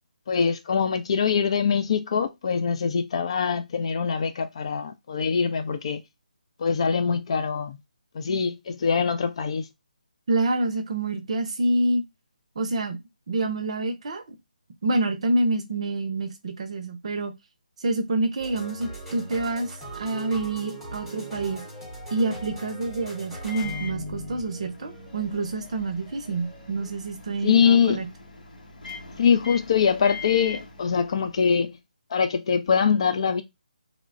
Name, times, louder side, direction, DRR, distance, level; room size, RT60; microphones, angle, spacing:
voice 1, 0.3-6.0 6.6-7.8 8.1-9.6 27.4-28.0 29.2-31.7 32.1-33.4, left 6 dB, 40° left, 0.3 m, -23 dB
voice 2, 10.3-12.0 12.6-13.0 13.3-14.4 14.8-17.3 17.8-21.6 22.1-28.1, right 2 dB, 45° right, 0.6 m, -27 dB
sound 1, 18.4-26.9, right 2 dB, 5° left, 0.7 m, -41 dB
Microwave oven, 23.4-31.6, left 4 dB, 65° left, 0.8 m, -40 dB
2.9 x 2.1 x 2.5 m
figure-of-eight pair, 150°, 5 cm